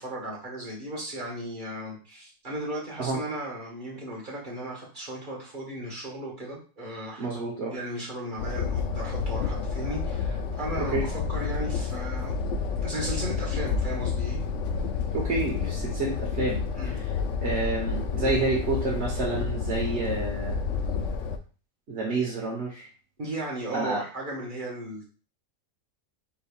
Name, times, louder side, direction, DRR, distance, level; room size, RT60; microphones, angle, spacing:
voice 1, 0.0-7.3 7.7-12.3 12.8-14.4 16.8-16.9 23.2-25.0, right 1 dB, 40° right, -3 dB, 1.6 m, -36 dB
voice 2, 7.2-7.7 10.9-11.0 15.1-17.0 17.4-20.6 21.9-22.9 23.7-24.0, right 3 dB, 60° right, -5 dB, 1.4 m, -29 dB
sound 1, 8.4-21.4, left 5 dB, 75° left, 1.0 m, -29 dB
4.9 x 3.8 x 2.4 m, 0.37 s
omnidirectional pair, 1.3 m